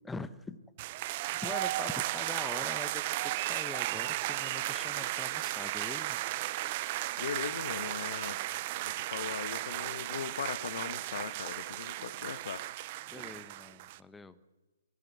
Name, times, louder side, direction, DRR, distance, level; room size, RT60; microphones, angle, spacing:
voice 1, 0.0-0.6 1.4-6.2 13.1-14.4, left 3 dB, 5° left, 14 dB, 1.0 m, -43 dB
sound 1, 0.8-14.0, right 17 dB, 35° right, 0.7 m, -35 dB
voice 2, 7.2-8.4 8.8-12.6, left 7 dB, 60° left, 12 dB, 1.5 m, -39 dB
25.0 x 18.0 x 6.9 m, 1.2 s
hypercardioid pair, 135°, 0 cm